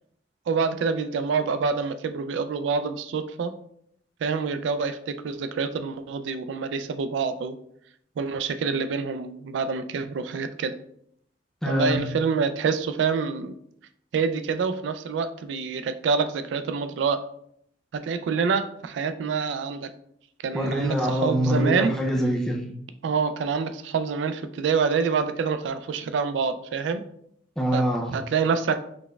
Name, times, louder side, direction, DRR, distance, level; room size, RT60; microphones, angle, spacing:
voice 1, 0.5-3.5 4.2-7.6 8.2-10.7 11.7-13.5 14.1-17.2 17.9-19.9 20.4-21.9 23.0-27.0 27.7-27.8 28.1-28.8, right 5 dB, 75° right, 10 dB, 0.3 m, -26 dB
voice 2, 11.6-12.0 20.5-22.7 27.6-28.1, equal, ahead, 0 dB, 0.4 m, -24 dB
4.0 x 3.2 x 2.3 m, 0.68 s
head